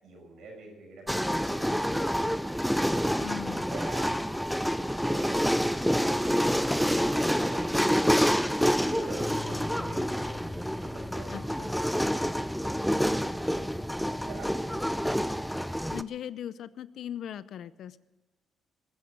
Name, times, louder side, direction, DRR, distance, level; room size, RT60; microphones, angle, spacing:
voice 1, 0.0-2.3 3.7-4.3 5.0-10.5 10.8-11.7 12.6-13.1 14.2-14.7, right 2 dB, 70° right, 1 dB, 6.4 m, -45 dB
sound 1, 1.1-16.0, equal, ahead, 0.6 m, -28 dB
voice 2, 3.2-3.8 11.3-11.8 15.9-18.0, left 10 dB, 70° left, 17 dB, 0.6 m, -39 dB
sound 2, 9.2-15.5, left 2 dB, 20° left, 5.8 m, -45 dB
20.5 x 9.6 x 6.6 m, 1.2 s
cardioid pair, 90°, 0 cm